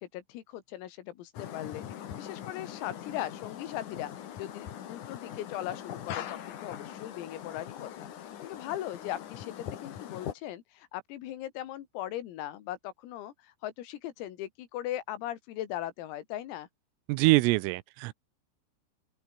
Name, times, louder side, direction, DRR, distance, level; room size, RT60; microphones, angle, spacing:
voice 1, 0.0-1.8 2.2-4.1 4.4-8.1 8.4-16.7, left 13 dB, 85° left, 4.7 m, -39 dB
sound 1, 1.3-10.3, left 10 dB, 55° left, 2.3 m, -42 dB
voice 2, 17.1-18.1, right 21 dB, 85° right, 3.3 m, -24 dB
open air
omnidirectional pair, 6.0 m